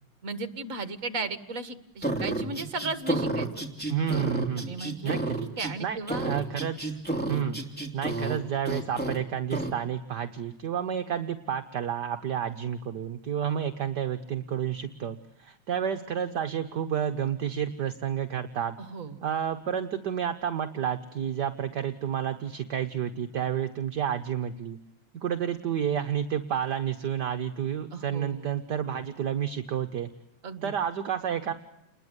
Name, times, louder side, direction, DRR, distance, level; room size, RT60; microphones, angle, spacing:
voice 1, 0.2-3.5 4.6-6.3 18.8-19.2 27.9-28.5 30.4-30.7, right 3 dB, 40° right, 12 dB, 2.0 m, -35 dB
sound 1, 2.0-5.7 6.1-8.4 8.6-9.2 9.5-9.7, right 2 dB, 5° left, 3.1 m, -30 dB
voice 2, 3.9-5.4 5.8-7.0 7.3-7.6 7.9-18.8 19.2-24.8 25.1-30.1 30.6-31.5, right 9 dB, 60° right, 8 dB, 1.7 m, -30 dB
29.5 x 21.5 x 8.1 m, 0.82 s
omnidirectional pair, 2.2 m